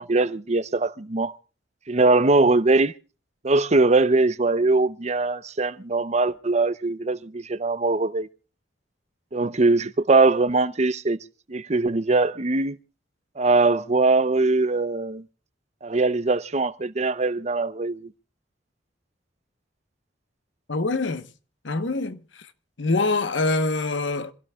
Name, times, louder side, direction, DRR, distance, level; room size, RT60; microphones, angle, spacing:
voice 1, 0.0-1.4 1.9-2.9 3.4-8.3 9.3-11.2 11.5-12.8 13.4-15.2 15.8-18.1, right 3 dB, 40° right, 0.7 m, -21 dB
voice 2, 20.7-21.3 21.6-22.5 22.8-24.3, left 3 dB, 80° left, 1.1 m, -25 dB
27.0 x 16.5 x 2.4 m
head